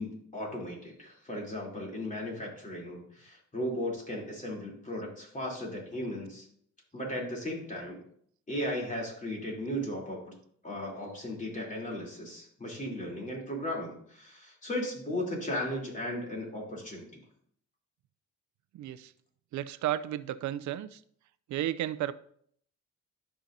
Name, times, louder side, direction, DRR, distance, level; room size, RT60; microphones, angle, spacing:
voice 1, 0.0-6.5 6.9-8.0 8.5-10.3 10.6-17.2, left 1 dB, 25° left, 3.2 m, -36 dB
voice 2, 18.7-19.1 19.5-21.0 21.5-22.1, right 12 dB, 70° right, 0.5 m, -33 dB
13.0 x 5.7 x 2.7 m
cardioid pair, 90°, 30 cm